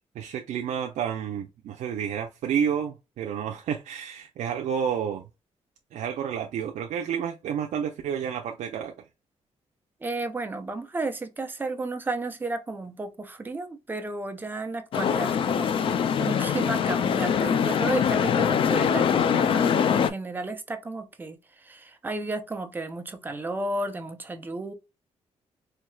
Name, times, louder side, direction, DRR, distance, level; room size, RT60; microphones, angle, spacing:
voice 1, 0.2-5.2 5.9-8.9, right 8 dB, 80° right, 0.5 m, -30 dB
voice 2, 10.0-21.4 21.6-24.7, right 2 dB, 15° right, 0.5 m, -33 dB
sound 1, 14.9-20.1, left 7 dB, 45° left, 0.3 m, -23 dB
4.5 x 2.7 x 2.2 m
wide cardioid pair, 180°, 12 cm